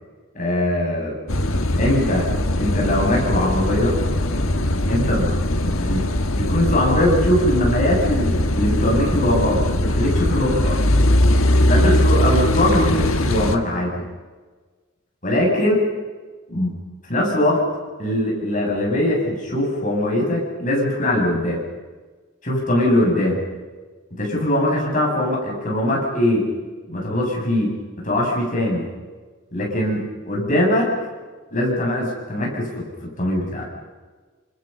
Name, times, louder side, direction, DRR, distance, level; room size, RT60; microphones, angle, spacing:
voice 1, 0.3-1.2 1.8-4.0 4.9-5.3 5.6-6.1 6.4-10.7 11.7-14.0 15.2-15.7 16.5-16.8 17.1-17.6 18.0-21.6 22.4-23.4 24.2-26.5 26.9-27.8 28.0-28.9 29.5-30.9 31.5-33.6, left 1 dB, 35° left, -2 dB, 7.9 m, -21 dB
Car passing by / Idling / Accelerating revving vroom, 1.3-13.6, left 1 dB, 65° left, 1.6 m, -20 dB
29.0 x 27.0 x 5.6 m, 1.4 s
head